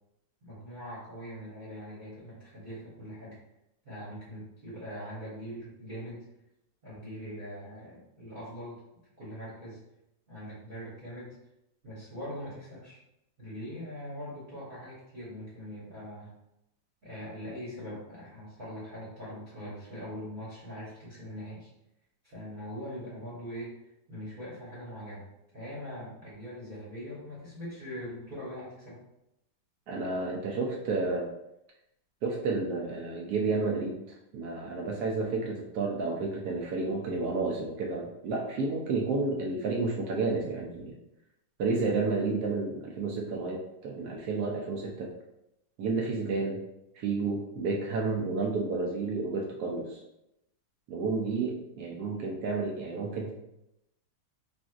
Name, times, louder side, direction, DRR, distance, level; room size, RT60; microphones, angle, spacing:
voice 1, 0.4-3.4 3.8-6.2 6.8-8.8 9.2-9.8 10.3-11.4 11.8-13.0 13.4-16.3 17.0-21.7 22.2-23.7 24.1-25.2 25.5-29.0, equal, 30° right, -9 dB, 1.0 m, -42 dB
voice 2, 29.9-31.3 32.2-41.0 41.6-45.1 45.8-46.6 46.9-50.0 50.9-53.3, right 3 dB, 75° right, 0 dB, 0.9 m, -31 dB
3.6 x 2.5 x 2.4 m, 0.85 s
omnidirectional pair, 2.1 m